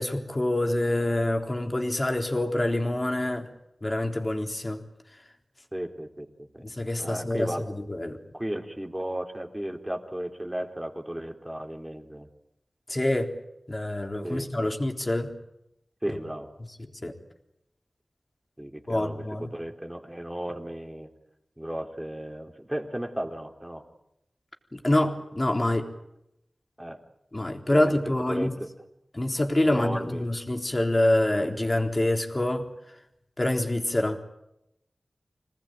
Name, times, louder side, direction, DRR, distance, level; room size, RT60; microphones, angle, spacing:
voice 1, 0.0-3.5 3.8-4.8 6.6-8.2 12.9-13.3 13.7-15.3 17.0-17.1 18.9-19.5 24.7-25.8 27.3-28.5 29.1-32.7 33.4-34.2, left 1 dB, 30° left, 4 dB, 3.7 m, -26 dB
voice 2, 5.7-6.7 7.0-7.7 8.3-12.3 14.2-14.7 16.0-16.5 18.6-21.1 21.6-23.8 26.8-27.0 27.7-28.0 28.3-28.7 29.6-30.2, right 1 dB, 10° right, 4 dB, 3.6 m, -35 dB
26.5 x 19.0 x 9.2 m, 0.83 s
wide cardioid pair, 70°, 0 cm